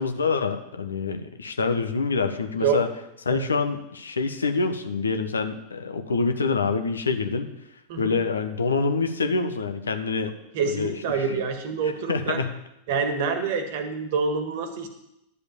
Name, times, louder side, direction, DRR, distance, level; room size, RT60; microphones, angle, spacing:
voice 1, 0.0-2.9 3.2-7.5 8.0-10.3 10.6-11.2 12.1-12.5, left 4 dB, 75° left, 7 dB, 1.0 m, -26 dB
voice 2, 10.5-12.4 12.9-14.9, right 5 dB, 50° right, 7 dB, 1.6 m, -26 dB
11.0 x 5.0 x 8.4 m, 0.84 s
figure-of-eight pair, 90°, 0 cm